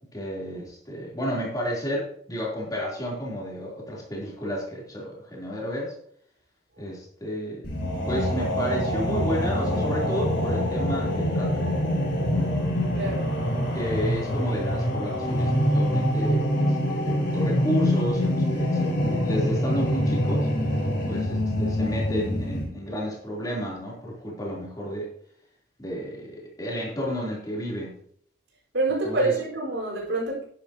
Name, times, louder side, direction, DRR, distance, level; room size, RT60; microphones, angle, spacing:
voice 1, 0.1-5.9 6.8-7.7 8.1-11.6 12.3-12.5 13.7-20.5 21.0-25.1 25.8-28.0 29.0-29.3, equal, 20° left, -4 dB, 3.6 m, -32 dB
sound 1, 7.6-22.6, equal, 70° left, 3.4 m, -25 dB
voice 2, 12.9-13.3 28.7-30.4, right 2 dB, 80° right, -4 dB, 4.9 m, -26 dB
10.5 x 10.5 x 3.0 m, 0.64 s
head